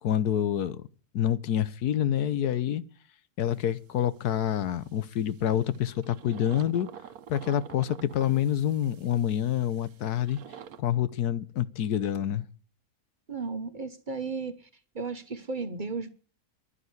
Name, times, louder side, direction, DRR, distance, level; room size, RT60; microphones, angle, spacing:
voice 1, 0.0-0.8 1.1-2.8 3.4-6.9 7.3-10.4 10.8-12.4, left 10 dB, 80° left, 1.4 m, -27 dB
sound 1, 3.5-4.3 4.7-10.8, right 8 dB, 70° right, 1.3 m, -48 dB
voice 2, 13.3-14.7 14.9-16.1, right 4 dB, 35° right, 1.1 m, -34 dB
11.5 x 10.0 x 9.6 m
omnidirectional pair, 1.6 m